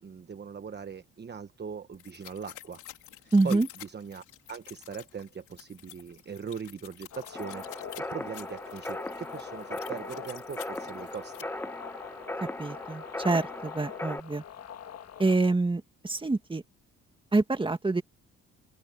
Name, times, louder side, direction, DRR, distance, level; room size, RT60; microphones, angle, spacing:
voice 1, 0.0-2.8 3.2-11.4, right 6 dB, 35° right, 1.2 m, -40 dB
sound 1, 1.9-11.4, left 13 dB, 85° left, 3.5 m, -49 dB
voice 2, 3.3-3.7 12.6-14.4 15.2-16.6 17.3-18.0, right 3 dB, 15° right, 1.9 m, -26 dB
sound 2, 7.1-15.4, left 9 dB, 55° left, 1.7 m, -45 dB
sound 3, 7.3-14.2, left 1 dB, 5° left, 1.1 m, -38 dB
open air
cardioid pair, 90°, 30 cm